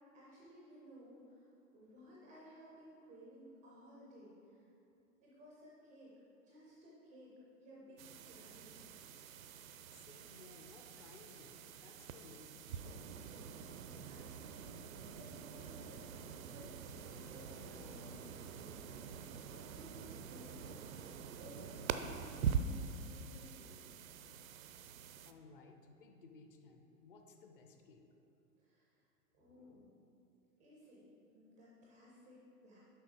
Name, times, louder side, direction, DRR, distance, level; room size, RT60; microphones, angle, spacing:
voice 1, 0.1-4.6 5.2-6.1 6.4-7.3 7.6-8.8 13.6-18.9 19.1-20.8 21.4-24.0 28.6-28.9 29.3-29.9 30.6-31.0 31.3-32.8, equal, 10° right, -6 dB, 0.4 m, -58 dB
sound 1, 8.0-25.3, right 7 dB, 60° right, 0.5 m, -45 dB
voice 2, 9.9-13.0 25.3-28.0 29.5-29.9, left 3 dB, 35° left, 4 dB, 0.6 m, -59 dB
sound 2, 12.9-20.8, left 3 dB, 60° left, 1.0 m, -62 dB
6.7 x 5.4 x 4.6 m, 2.8 s
figure-of-eight pair, 110°, 46 cm